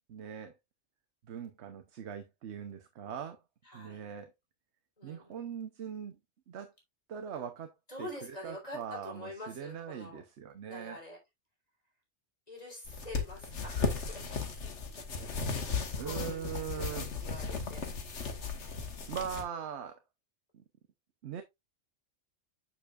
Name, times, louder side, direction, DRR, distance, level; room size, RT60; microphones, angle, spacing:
voice 1, 0.1-0.6 1.3-3.4 3.7-4.3 5.0-6.2 6.5-6.7 7.1-8.1 8.4-11.0 15.9-17.1 19.1-20.0 20.5-20.6 21.2-21.4, right 8 dB, 75° right, 1.1 m, -41 dB
voice 2, 3.6-4.1 5.0-5.5 7.9-10.2 10.7-11.2 12.5-14.2 14.9-18.0, left 1 dB, 35° left, 3.7 m, -47 dB
sound 1, 12.9-19.4, left 4 dB, 85° left, 1.7 m, -36 dB
7.6 x 6.8 x 2.4 m
omnidirectional pair, 1.2 m